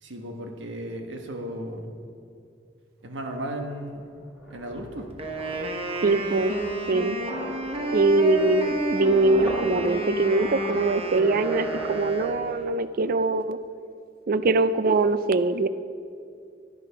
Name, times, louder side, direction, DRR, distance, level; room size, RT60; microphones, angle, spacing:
voice 1, 0.0-1.9 3.0-4.1 4.5-5.1, right 1 dB, 85° right, 3 dB, 1.3 m, -35 dB
sound 1, 3.1-3.2 3.5-12.6 12.8-13.1, equal, 5° right, 3.0 m, -39 dB
Wind instrument woodwind instrument, 5.2-12.8, right 2 dB, 30° right, 1.1 m, -31 dB
voice 2, 6.0-6.6 6.9-7.2 7.9-13.6 14.3-15.7, right 2 dB, 50° right, 13 dB, 0.4 m, -22 dB
10.5 x 9.9 x 5.9 m, 2.4 s
head